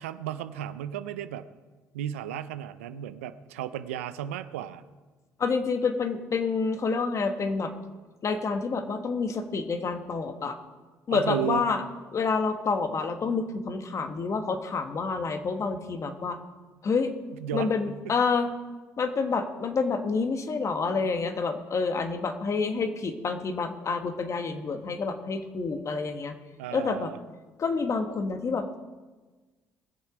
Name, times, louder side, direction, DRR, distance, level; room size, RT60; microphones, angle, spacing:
voice 1, 0.0-1.5 1.9-4.8 11.1-11.6 17.4-17.7 18.1-18.2 26.6-27.2, right 11 dB, 90° right, 13 dB, 0.5 m, -34 dB
voice 2, 5.4-7.7 8.2-10.6 11.1-11.8 12.1-16.4 16.8-17.1 17.5-18.5 19.0-26.3 26.7-27.1 27.6-28.8, left 4 dB, 45° left, 7 dB, 1.4 m, -28 dB
20.0 x 7.2 x 5.0 m, 1.3 s
hypercardioid pair, 60°, 7 cm